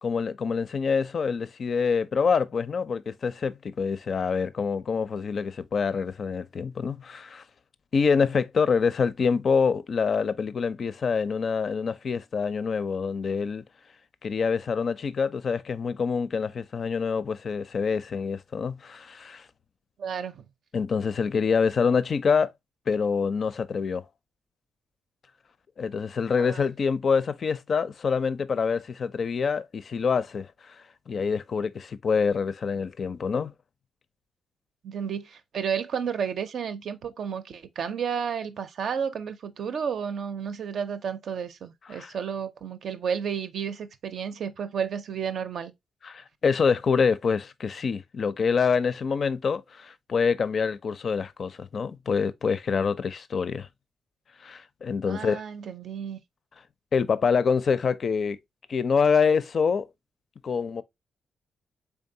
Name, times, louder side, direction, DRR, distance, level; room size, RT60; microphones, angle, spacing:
voice 1, 0.0-7.4 7.9-13.6 14.2-19.5 20.7-22.5 22.9-24.0 25.8-30.8 31.1-33.5 41.9-42.1 46.0-53.7 54.4-55.4 56.9-58.4 58.7-59.9 60.4-60.8, left 5 dB, 55° left, 0.4 m, -26 dB
voice 2, 20.0-20.5 26.4-26.6 34.8-45.7 55.0-56.2, right 7 dB, 70° right, 0.5 m, -32 dB
3.6 x 3.5 x 2.6 m
cardioid pair, 70°, 0 cm